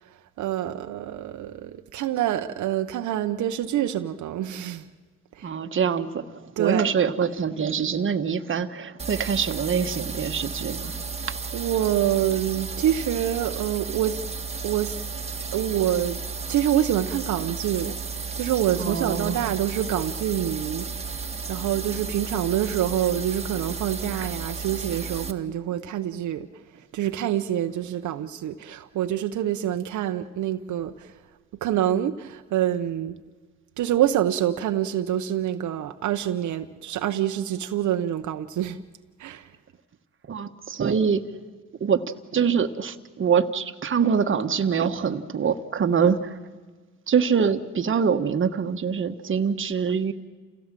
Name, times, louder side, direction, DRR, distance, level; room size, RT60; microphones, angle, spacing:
voice 1, 0.4-4.9 5.3-5.5 6.6-6.9 11.5-14.2 14.6-15.0 15.5-16.2 16.5-18.0 18.4-26.5 26.9-31.1 31.6-33.2 33.8-38.8 39.2-39.5, right 11 dB, 75° right, 0.9 m, -26 dB
voice 2, 5.4-10.9 18.8-19.4 24.1-24.3 40.3-41.2 41.8-46.4 47.1-50.1, right 6 dB, 40° right, 1.3 m, -24 dB
sound 1, 9.0-25.3, right 5 dB, 20° right, 1.6 m, -33 dB
28.5 x 17.0 x 7.5 m
cardioid pair, 90°, 30 cm